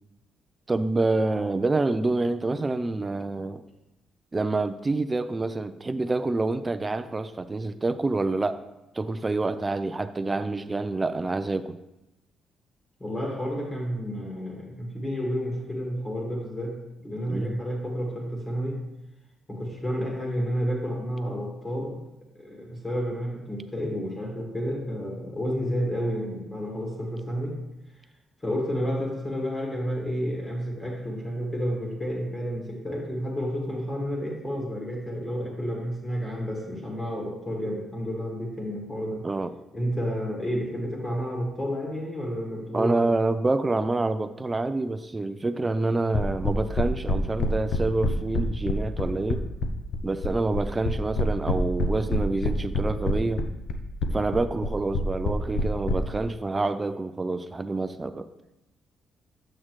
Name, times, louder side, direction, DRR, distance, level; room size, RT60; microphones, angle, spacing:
voice 1, 0.7-3.6 4.3-8.6 8.9-11.8 17.3-17.6 23.8-23.9 39.2-39.5 42.7-49.4 50.0-53.4 54.1-58.3, right 2 dB, 25° right, 10 dB, 0.4 m, -27 dB
voice 2, 13.0-18.8 19.5-22.0 22.4-27.6 28.4-39.3 39.7-43.2, equal, 25° left, -1 dB, 1.8 m, -30 dB
sound 1, 46.1-56.0, left 2 dB, 70° left, 0.6 m, -26 dB
7.3 x 6.4 x 3.1 m, 0.93 s
cardioid pair, 90°, 0 cm